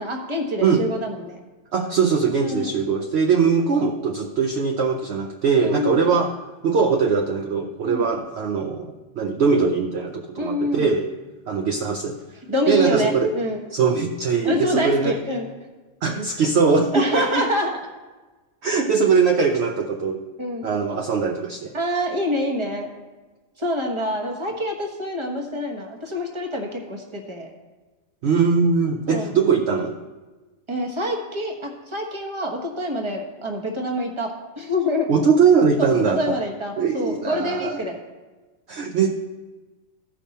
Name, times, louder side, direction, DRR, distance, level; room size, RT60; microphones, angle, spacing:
voice 1, 0.0-1.4 2.4-2.7 5.5-6.0 7.8-8.1 10.4-10.9 12.5-13.6 14.4-15.5 16.9-17.7 20.4-20.7 21.7-22.9 23.6-27.5 29.1-29.3 30.7-35.1 35.8-38.0, left 1 dB, 25° right, 1 dB, 1.3 m, -26 dB
voice 2, 1.7-6.4 6.6-11.1 11.5-12.2 12.7-13.3 13.7-15.2 16.0-17.5 18.6-20.3 20.6-21.8 28.2-30.0 35.1-36.3 36.8-37.8 38.7-39.1, right 5 dB, 60° right, 4 dB, 0.8 m, -21 dB
15.0 x 5.4 x 4.2 m, 1.3 s
omnidirectional pair, 1.4 m